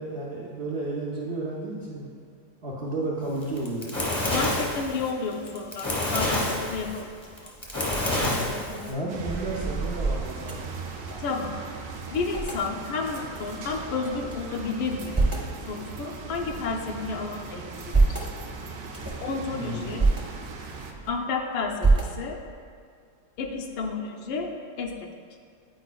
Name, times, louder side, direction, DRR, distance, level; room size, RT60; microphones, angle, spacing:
voice 1, 0.0-2.1 2.6-3.9 8.0-8.4 8.9-10.6 19.5-20.0, right 2 dB, 90° right, -5 dB, 0.5 m, -32 dB
Fire, 3.4-8.9, left 1 dB, 30° left, 0.5 m, -28 dB
voice 2, 4.3-7.1 7.4-7.5 11.2-11.5 12.1-15.2 15.7-18.2 19.2-20.1 21.1-22.4 23.4-24.5 24.8-25.1, left 4 dB, 80° left, 1 dB, 1.4 m, -31 dB
sound 1, 6.8-7.2 7.7-11.4 11.7-11.8 12.0-12.6 13.3-14.4 14.8-15.6 16.1-17.1 17.6-18.3 18.8-19.3 19.8-20.2 20.7-21.3 21.8-22.5, right 3 dB, 25° right, 0.5 m, -27 dB
sound 2, 9.1-20.9, right 4 dB, 70° right, 0.9 m, -39 dB
9.1 x 4.8 x 2.2 m, 2.2 s
omnidirectional pair, 2.1 m